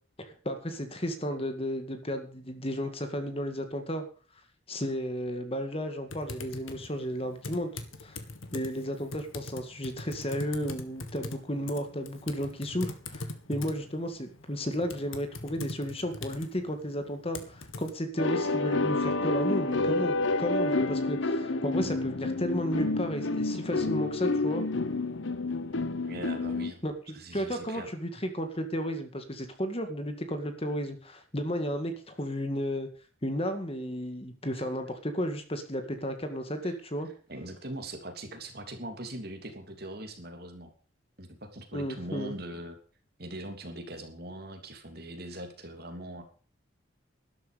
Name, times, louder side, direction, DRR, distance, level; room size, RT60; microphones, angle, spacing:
voice 1, 0.2-4.0 4.7-8.2 8.5-24.6 26.8-26.9 27.3-32.9 33.2-37.1 41.7-42.3, equal, 30° left, 7 dB, 2.1 m, -33 dB
Typing, 6.1-17.9, left 2 dB, 85° left, 2.1 m, -42 dB
sound 1, 18.2-26.7, left 2 dB, 70° left, 0.9 m, -29 dB
voice 2, 26.1-26.8 27.1-27.9 36.6-36.7 37.3-40.7 41.2-42.8 43.2-46.2, right 1 dB, 50° right, 5 dB, 3.1 m, -41 dB
13.0 x 12.5 x 5.3 m, 0.39 s
head